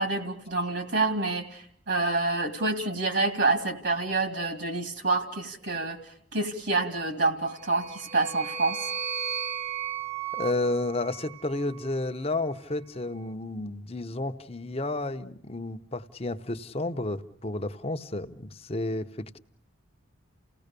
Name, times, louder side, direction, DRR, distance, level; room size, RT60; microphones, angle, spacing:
voice 1, 0.0-6.0 6.3-8.9, right 3 dB, 60° right, 2.2 m, -27 dB
sound 1, 7.6-11.9, right 8 dB, 35° right, 0.9 m, -35 dB
voice 2, 10.3-19.4, left 2 dB, 30° left, 0.8 m, -31 dB
29.5 x 17.0 x 6.8 m
head